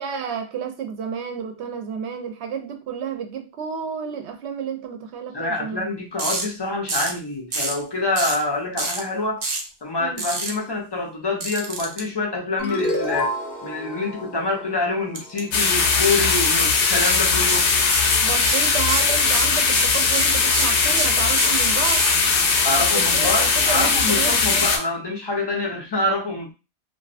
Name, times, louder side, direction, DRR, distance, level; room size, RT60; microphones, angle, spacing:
voice 1, 0.0-5.9 10.0-10.2 18.2-22.1 22.9-24.6, right 7 dB, 75° right, 0.8 m, -31 dB
voice 2, 5.3-9.4 9.8-17.7 22.6-26.5, left 2 dB, 35° left, 0.4 m, -26 dB
sound 1, 6.2-6.4 6.9-7.2 7.5-7.8 8.2-8.4 8.8-9.0 9.4-9.7 10.2-10.5 11.4-12.0 15.1-15.4 15.7-15.9 16.3-16.6 17.0-17.2 17.5-18.1 18.4-22.1, right 3 dB, 50° right, 0.5 m, -27 dB
sound 2, 12.6-15.8, left 1 dB, 20° right, 0.8 m, -29 dB
sound 3, 15.5-24.8, left 4 dB, 80° left, 0.9 m, -19 dB
2.6 x 2.3 x 2.4 m
omnidirectional pair, 1.2 m